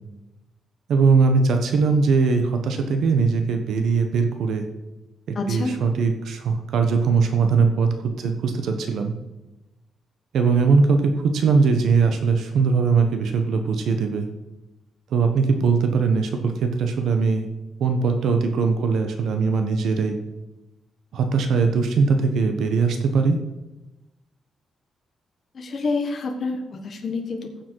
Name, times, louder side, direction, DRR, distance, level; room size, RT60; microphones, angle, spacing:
voice 1, 0.9-4.6 5.3-9.1 10.3-14.3 15.1-17.5 17.8-20.2 21.1-23.4, right 4 dB, 65° right, 6 dB, 1.2 m, -20 dB
voice 2, 5.3-5.7 25.5-27.6, left 3 dB, 35° left, 3 dB, 1.3 m, -28 dB
15.5 x 7.3 x 4.7 m, 1.0 s
cardioid pair, 165°, 0 cm